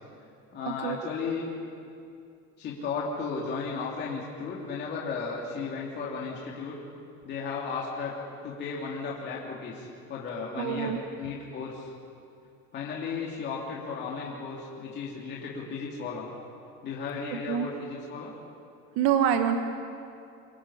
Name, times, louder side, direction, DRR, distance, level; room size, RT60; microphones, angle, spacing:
voice 1, 0.5-1.5 2.6-6.8 7.2-8.1 8.4-10.9 11.2-11.9 12.7-16.3 16.8-18.3, left 5 dB, 35° left, -4 dB, 2.9 m, -35 dB
voice 2, 10.6-11.0 17.5-17.7 19.0-19.6, right 9 dB, 60° right, 7 dB, 1.4 m, -25 dB
26.5 x 25.0 x 5.7 m, 2.5 s
cardioid pair, 165°, 29 cm